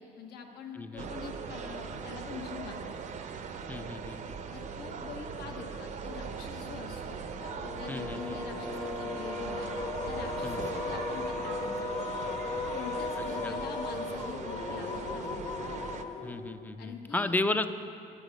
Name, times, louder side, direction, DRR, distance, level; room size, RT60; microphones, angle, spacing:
voice 1, 0.0-3.0 4.5-7.2 7.7-9.7 10.0-12.4 12.7-15.4 16.8-17.3, left 6 dB, 75° left, 3 dB, 1.0 m, -44 dB
voice 2, 0.8-1.1 3.7-4.4 7.9-8.4 10.4-10.6 13.4-13.6 16.2-17.7, left 2 dB, 10° left, 10 dB, 0.4 m, -33 dB
sound 1, 1.0-16.0, right 6 dB, 45° right, 0.5 m, -40 dB
sound 2, 7.3-16.7, left 3 dB, 40° left, 1.0 m, -36 dB
9.8 x 9.0 x 5.1 m, 2.6 s
cardioid pair, 110°, 17 cm